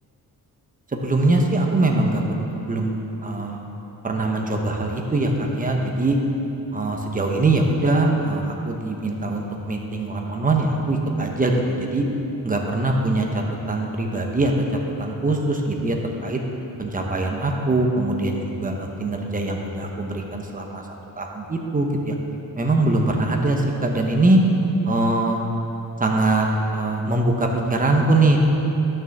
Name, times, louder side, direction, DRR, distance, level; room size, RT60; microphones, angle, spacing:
voice 1, 0.9-3.6 4.0-6.2 6.7-12.1 12.4-14.5 15.0-16.0 16.2-16.4 16.8-20.8 21.2-22.1 22.6-24.4 24.8-25.4 26.0-28.4, right 2 dB, 25° right, 1 dB, 1.0 m, -22 dB
11.5 x 6.4 x 6.6 m, 2.9 s
wide cardioid pair, 170°, 36 cm